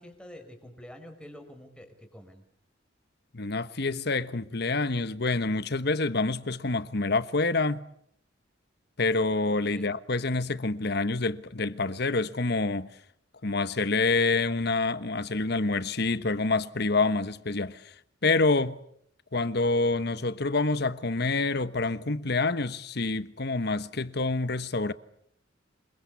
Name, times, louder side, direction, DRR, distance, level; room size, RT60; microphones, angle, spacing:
voice 1, 0.0-2.4 9.7-9.9, equal, 5° left, 5.1 m, -47 dB
voice 2, 3.3-7.8 9.0-12.9 13.4-17.9 18.2-18.8 19.3-24.9, left 3 dB, 55° left, 1.2 m, -27 dB
27.5 x 22.5 x 8.3 m
head